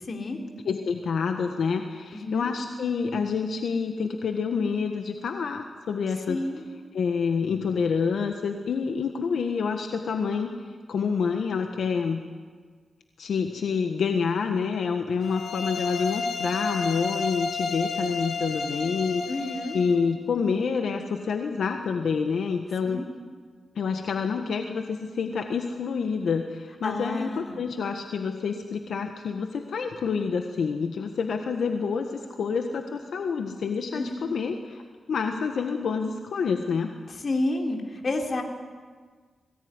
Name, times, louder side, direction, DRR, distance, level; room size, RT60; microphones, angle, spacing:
voice 1, 0.1-0.4 2.1-2.5 6.3-6.7 19.3-19.8 22.8-23.1 26.8-27.6 33.9-34.4 37.2-38.4, left 2 dB, 50° left, 2 dB, 3.6 m, -30 dB
voice 2, 0.6-6.4 6.9-10.5 10.9-12.2 13.2-19.2 19.7-23.0 23.7-34.8 35.1-36.9, left 5 dB, 80° left, 4 dB, 1.5 m, -28 dB
sound 1, 15.2-20.0, left 4 dB, 65° left, 4.3 m, -31 dB
22.0 x 18.0 x 9.8 m, 1.5 s
cardioid pair, 90°, 0 cm